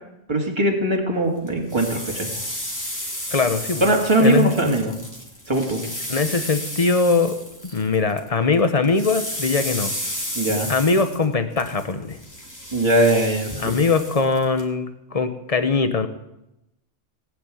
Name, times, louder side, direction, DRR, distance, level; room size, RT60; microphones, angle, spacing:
voice 1, 0.3-2.3 3.8-4.9 5.5-5.8 10.3-10.7 12.7-13.7, right 1 dB, 20° right, 0 dB, 2.5 m, -20 dB
sound 1, 1.5-8.3 8.5-14.6, equal, 15° left, 2.8 m, -33 dB
voice 2, 3.3-3.8 4.2-4.8 6.1-7.4 7.7-9.9 10.7-12.2 13.6-16.1, left 4 dB, 30° left, 9 dB, 1.2 m, -21 dB
19.5 x 6.8 x 9.2 m, 0.87 s
omnidirectional pair, 1.3 m